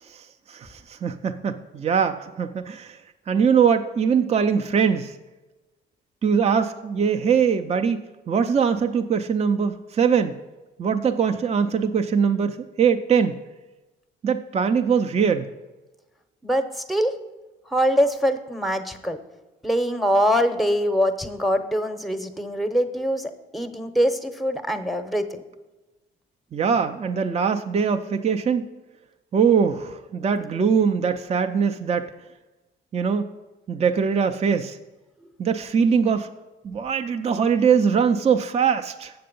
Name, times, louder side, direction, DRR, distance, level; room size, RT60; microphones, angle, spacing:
voice 1, 0.1-3.0 3.3-5.2 6.2-8.0 8.3-10.4 10.8-13.4 14.2-15.5 26.5-28.7 29.3-32.1 32.9-33.3 33.7-34.8 35.4-36.3 36.6-39.1, right 6 dB, 35° right, 7 dB, 0.5 m, -22 dB
voice 2, 16.4-17.1 17.7-19.2 19.6-25.3, equal, ahead, 8 dB, 0.8 m, -23 dB
7.8 x 6.6 x 5.3 m, 1.1 s
cardioid pair, 90°, 20 cm